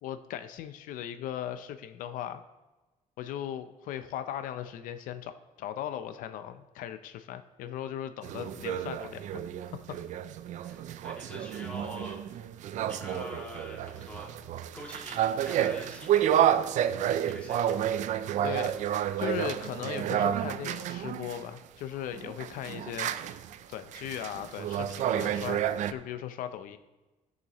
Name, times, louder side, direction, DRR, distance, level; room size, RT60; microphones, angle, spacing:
voice 1, 0.0-2.4 3.2-9.4 9.7-9.8 18.4-18.8 19.2-23.1 23.7-25.6 25.9-26.8, left 10 dB, 80° left, 10 dB, 0.6 m, -38 dB
sound 1, 8.2-21.4 22.2-25.9, right 10 dB, 60° right, 0.4 m, -30 dB
voice 2, 10.5-12.2 12.9-14.4 14.7-16.5 17.3-17.7, equal, 10° left, -2 dB, 2.2 m, -44 dB
16.0 x 6.8 x 3.1 m, 1.2 s
cardioid pair, 125°, 14 cm